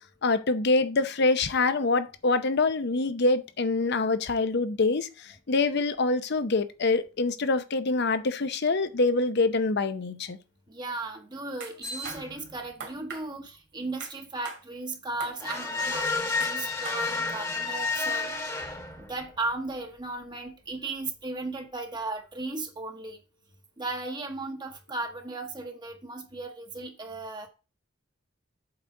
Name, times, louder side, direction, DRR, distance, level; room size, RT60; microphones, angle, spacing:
voice 1, 0.2-10.4, left 3 dB, 60° left, 0.7 m, -25 dB
voice 2, 10.7-18.3 19.0-23.2 23.8-27.5, right 2 dB, 20° right, 1.0 m, -36 dB
sound 1, 11.6-11.7 12.0-12.2 12.8-13.2 14.0-14.1 14.4-14.6 15.2-15.6 16.4-16.5 16.8-17.0, right 5 dB, 65° right, 2.4 m, -39 dB
sound 2, 11.8-12.5 15.4-19.3, left 4 dB, 15° left, 1.3 m, -31 dB
8.0 x 4.1 x 4.7 m
head